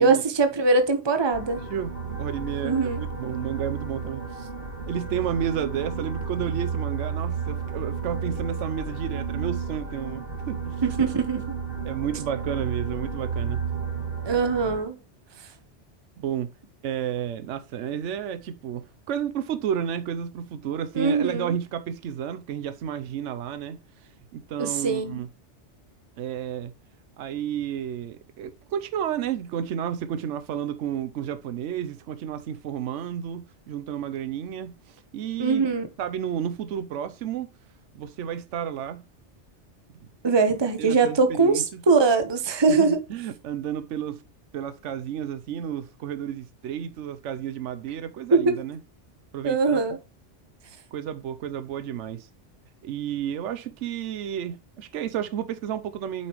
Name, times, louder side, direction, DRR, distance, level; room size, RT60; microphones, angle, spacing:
voice 1, 0.0-1.6 2.6-3.1 10.8-11.4 14.2-15.0 20.9-21.5 24.6-25.2 35.4-35.9 40.2-43.0 48.3-48.6 49.4-50.0, right 4 dB, 25° right, 1.0 m, -22 dB
sound 1, 1.3-14.8, right 5 dB, 50° right, 2.8 m, -32 dB
voice 2, 1.7-4.5 4.9-10.8 11.8-13.6 16.2-16.5 16.8-25.3 26.2-26.7 27.2-35.6 36.0-37.5 37.9-39.0 40.8-41.8 42.7-44.2 44.5-48.8 49.3-49.8 50.9-52.3 52.8-56.3, right 9 dB, 85° right, 1.0 m, -31 dB
8.4 x 5.5 x 3.1 m
omnidirectional pair, 1.2 m